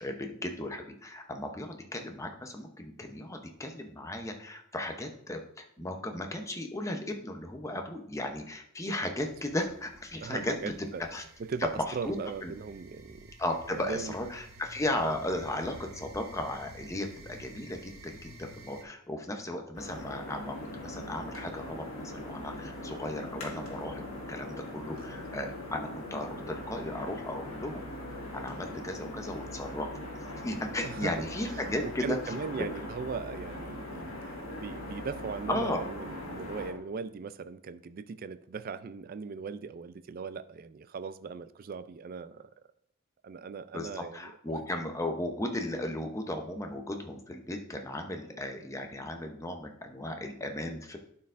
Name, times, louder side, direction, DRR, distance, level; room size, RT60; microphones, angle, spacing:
voice 1, 0.0-11.2 11.8-12.2 12.4-12.5 13.4-29.9 30.4-32.2 35.5-35.8 43.7-51.0, left 1 dB, 15° left, 4 dB, 0.7 m, -36 dB
sound 1, 9.2-18.8, right 1 dB, 70° right, 0.9 m, -51 dB
voice 2, 10.2-11.1 11.4-13.3 13.7-14.2 24.9-25.0 28.5-28.6 30.8-31.1 31.5-42.5 43.2-44.6, right 5 dB, 45° right, 13 dB, 0.3 m, -39 dB
sound 2, 19.7-36.7, left 1 dB, 85° left, 1.6 m, -41 dB
11.5 x 4.5 x 2.5 m, 0.69 s
head